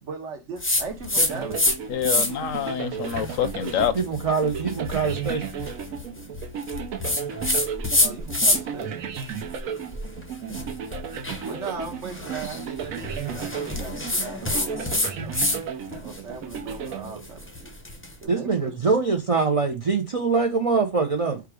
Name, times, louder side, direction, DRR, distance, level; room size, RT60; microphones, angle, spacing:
voice 1, 0.0-1.7 8.0-9.1 11.4-15.3 16.0-17.7 18.2-18.7, right 4 dB, 65° right, 1.2 m, -38 dB
sound 1, 0.6-1.8 2.0-2.5 3.0-8.8 9.2-15.6 15.9-18.1, left 1 dB, 15° left, 0.5 m, -27 dB
sound 2, 1.2-17.7, right 7 dB, 85° right, 1.1 m, -34 dB
voice 2, 1.9-3.9, left 8 dB, 75° left, 1.0 m, -26 dB
voice 3, 3.9-5.5 18.3-21.4, right 4 dB, 45° right, 0.4 m, -23 dB
4.7 x 2.4 x 4.7 m
omnidirectional pair, 1.4 m